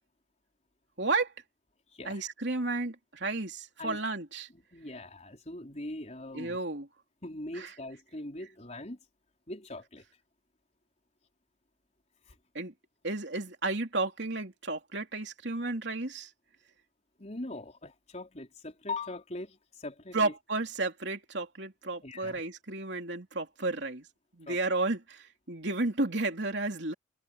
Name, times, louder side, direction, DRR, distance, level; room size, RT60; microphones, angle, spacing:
voice 1, 1.0-1.3 2.1-4.5 6.3-6.9 7.5-7.7 12.6-12.7 13.0-16.3 20.1-24.1 24.3-26.9, right 2 dB, 60° right, 3.5 m, -32 dB
voice 2, 1.9-2.3 3.8-4.0 4.5-6.6 7.2-9.0 9.5-10.0 12.3-12.4 17.2-20.3 22.0-22.4 24.5-24.6, left 2 dB, 35° left, 4.4 m, -41 dB
head